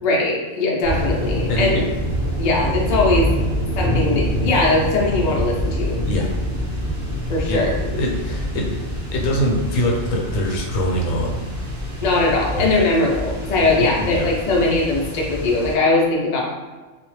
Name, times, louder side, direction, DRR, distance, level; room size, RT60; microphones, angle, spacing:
voice 1, 0.0-1.7 2.4-3.3 3.8-6.0 7.3-7.7 12.0-16.4, left 2 dB, 60° left, -2 dB, 0.4 m, -20 dB
sound 1, 0.8-15.7, equal, 25° right, 0.8 m, -26 dB
voice 2, 1.5-1.8 6.1-6.3 7.5-8.7 9.1-11.4 12.5-12.7 13.8-14.3, equal, 80° left, -2 dB, 1.0 m, -23 dB
2.3 x 2.0 x 3.1 m, 1.3 s
omnidirectional pair, 1.4 m